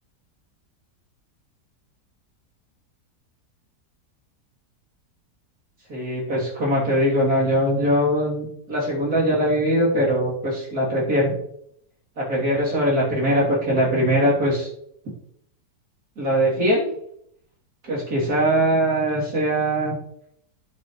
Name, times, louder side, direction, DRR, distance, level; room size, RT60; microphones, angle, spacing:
voice 1, 5.9-11.4 12.2-14.7 16.2-16.9 17.8-20.0, equal, 65° right, -5 dB, 3.8 m, -21 dB
9.6 x 8.5 x 3.2 m, 0.70 s
omnidirectional pair, 1.7 m